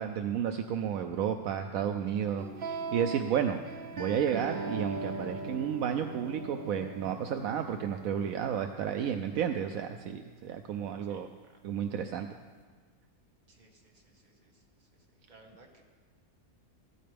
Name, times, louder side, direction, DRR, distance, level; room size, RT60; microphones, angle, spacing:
voice 1, 0.0-3.6 4.0-11.3 11.6-12.3, right 8 dB, 75° right, 6 dB, 1.0 m, -32 dB
sound 1, 2.4-9.4, right 3 dB, 45° right, 0.9 m, -40 dB
sound 2, 3.3-9.3, right 3 dB, 5° right, 2.3 m, -55 dB
voice 2, 11.0-11.5 13.5-14.9 15.3-15.8, right 2 dB, 30° right, 0 dB, 1.6 m, -60 dB
15.0 x 13.0 x 3.4 m, 1.5 s
omnidirectional pair, 1.6 m